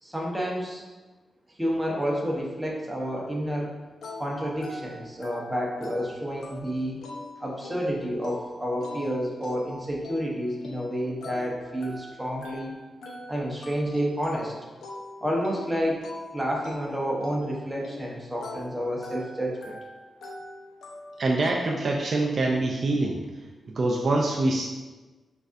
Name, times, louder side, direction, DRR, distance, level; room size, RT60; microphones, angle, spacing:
voice 1, 0.0-0.8 1.6-3.7 4.2-7.0 7.4-12.7 13.3-14.5 15.2-16.0 16.3-19.8, equal, 10° right, -3 dB, 0.9 m, -30 dB
sound 1, 4.0-21.5, left 1 dB, 90° left, 0.6 m, -43 dB
voice 2, 21.2-23.2 23.8-24.6, right 2 dB, 50° right, -1 dB, 0.4 m, -24 dB
6.2 x 2.6 x 2.5 m, 1.2 s
wide cardioid pair, 115°, 0 cm